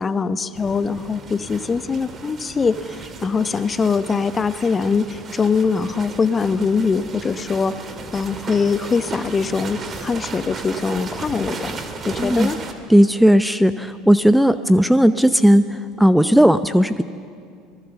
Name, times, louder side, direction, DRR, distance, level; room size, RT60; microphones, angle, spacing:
voice 1, 0.0-7.9 8.1-11.8 12.0-12.6, left 5 dB, 30° left, 13 dB, 0.9 m, -22 dB
sound 1, 0.5-12.7, right 4 dB, 35° right, 2.3 m, -35 dB
voice 2, 12.2-12.5 12.9-17.0, equal, ahead, 13 dB, 0.7 m, -15 dB
26.0 x 19.5 x 7.0 m, 2.2 s
hypercardioid pair, 75°, 0 cm